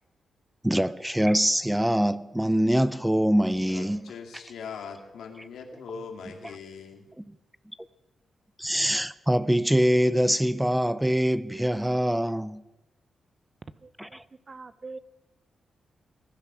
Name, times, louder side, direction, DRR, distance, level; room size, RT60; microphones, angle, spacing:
voice 1, 0.6-4.0 8.6-12.6 14.0-14.1, equal, 5° right, 0.5 m, -24 dB
voice 2, 3.7-7.1, left 5 dB, 85° left, 2.4 m, -41 dB
voice 3, 13.8-14.2 14.5-15.0, right 3 dB, 35° right, 0.8 m, -43 dB
20.0 x 11.5 x 6.2 m
cardioid pair, 90°, 0 cm